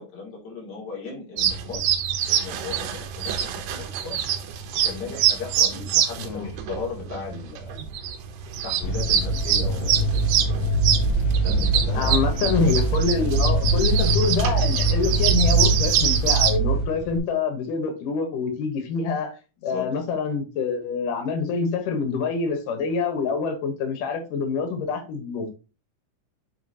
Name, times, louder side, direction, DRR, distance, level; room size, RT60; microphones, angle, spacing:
voice 1, 0.0-4.2 4.8-7.7 8.6-10.2 11.4-12.2 19.6-19.9, left 4 dB, 35° left, -3 dB, 2.8 m, -37 dB
sound 1, 1.4-16.6, right 9 dB, 75° right, 2.2 m, -25 dB
voice 2, 6.2-6.5 11.9-19.4 19.6-25.5, left 5 dB, 85° left, 6 dB, 2.7 m, -26 dB
sound 2, 8.8-17.2, right 2 dB, 55° left, 2.3 m, -23 dB
7.9 x 4.7 x 2.8 m, 0.32 s
omnidirectional pair, 3.6 m